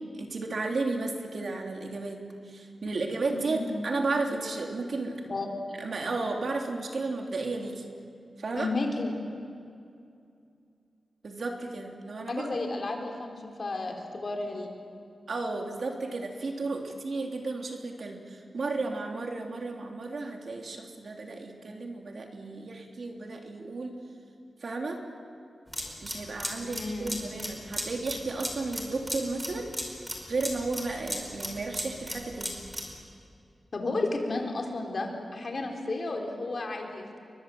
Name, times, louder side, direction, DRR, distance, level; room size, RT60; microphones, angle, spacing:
voice 1, 0.1-5.2 5.8-7.9 8.4-8.7 11.2-12.5 15.3-24.0 24.6-25.0 26.0-30.0 30.3-32.6, right 3 dB, 60° right, 2 dB, 3.4 m, -33 dB
voice 2, 2.8-3.7 5.3-5.5 8.5-9.1 12.3-14.7 26.6-27.3 33.7-37.2, left 2 dB, 50° left, 2 dB, 4.1 m, -33 dB
sound 1, 25.7-33.0, equal, 5° right, 5.1 m, -36 dB
30.0 x 23.5 x 7.9 m, 2.5 s
wide cardioid pair, 110°, 0 cm